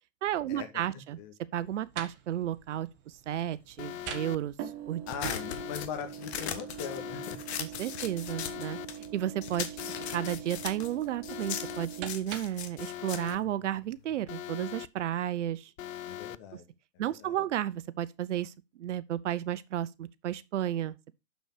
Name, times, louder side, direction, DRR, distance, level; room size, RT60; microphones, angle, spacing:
voice 1, 0.2-1.2 1.5-5.4 7.6-8.8 9.1-9.8 10.1-15.7 17.0-21.1, right 11 dB, 65° right, 0.7 m, -33 dB
voice 2, 0.9-1.3 5.1-7.4 16.0-16.7 17.0-17.4, left 8 dB, 35° left, 2.0 m, -40 dB
sound 1, 1.5-12.7, right 9 dB, 30° right, 1.3 m, -44 dB
Alarm, 3.8-4.4 5.3-5.9 6.8-7.4 8.3-8.9 9.8-10.4 11.3-11.9 12.8-13.4 14.3-14.9 15.8-16.4, left 12 dB, 85° left, 0.6 m, -40 dB
sound 2, 5.1-9.1 9.4-14.2, left 9 dB, 55° left, 1.4 m, -39 dB
6.7 x 6.2 x 4.7 m
hypercardioid pair, 140°, 39 cm